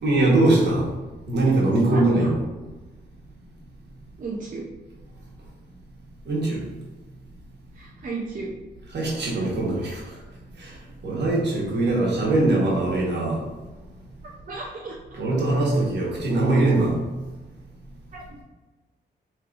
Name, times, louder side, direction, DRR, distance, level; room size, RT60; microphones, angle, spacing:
voice 1, 0.0-0.9 1.3-2.4 6.3-6.6 8.9-10.0 10.6-10.7 11.0-13.4 15.1-17.0, right 2 dB, 70° right, -4 dB, 1.3 m, -21 dB
voice 2, 1.9-2.3 4.2-4.6 7.7-8.5 11.1-11.2 14.2-15.2 18.1-18.4, right 3 dB, 45° right, -4 dB, 0.6 m, -35 dB
4.6 x 3.2 x 2.5 m, 1.2 s
cardioid pair, 110°, 18 cm